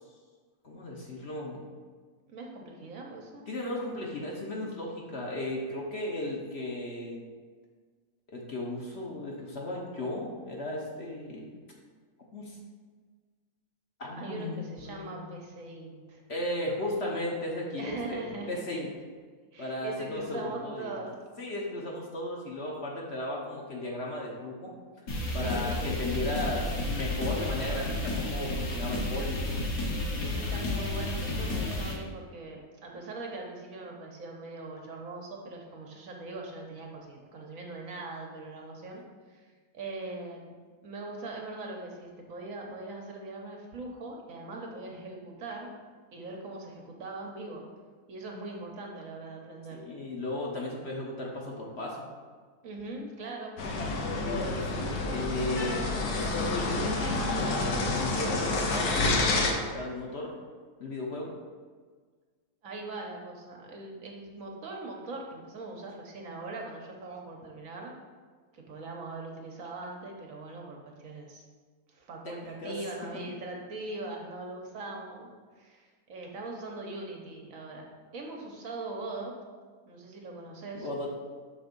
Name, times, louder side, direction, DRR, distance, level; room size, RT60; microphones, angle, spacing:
voice 1, 0.6-1.6 3.5-7.2 8.3-11.5 12.3-12.6 14.0-15.4 16.3-18.9 19.6-20.9 21.4-24.7 25.3-29.5 49.7-52.1 54.2-59.0 59.7-60.3 60.8-61.3 72.2-72.8 80.7-81.1, left 1 dB, 50° left, -2 dB, 1.0 m, -35 dB
voice 2, 2.3-3.5 14.2-16.2 17.8-18.6 19.5-21.2 25.2-26.0 30.2-39.0 39.3-40.5 40.8-45.7 46.1-47.7 48.1-49.8 52.6-53.5 62.6-67.9 68.5-71.5 71.9-75.3 75.6-77.9 78.1-79.3 79.8-80.9, right 2 dB, 65° right, 0 dB, 1.2 m, -41 dB
sound 1, 25.1-31.9, left 2 dB, 65° left, 1.5 m, -31 dB
sound 2, 53.6-59.5, left 2 dB, 85° left, 1.4 m, -29 dB
6.3 x 3.5 x 5.2 m, 1.5 s
omnidirectional pair, 1.6 m